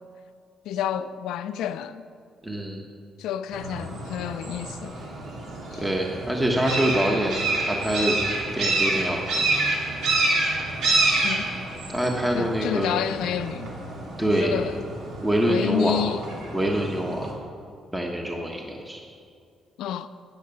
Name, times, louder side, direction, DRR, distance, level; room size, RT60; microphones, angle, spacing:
voice 1, 0.6-2.1 3.2-4.9 5.7-5.8 11.2-11.5 12.3-13.7 14.3-14.8 15.4-16.2 19.8-20.1, left 10 dB, 85° left, 0.5 m, -29 dB
voice 2, 2.4-2.8 5.8-8.2 8.5-9.4 11.9-12.9 14.2-14.6 15.2-16.0 16.5-17.3 17.9-19.0, right 1 dB, 10° right, 1.2 m, -25 dB
sound 1, 3.5-17.3, right 2 dB, 85° right, 2.6 m, -28 dB
10.5 x 8.8 x 6.9 m
cardioid pair, 90°, 0 cm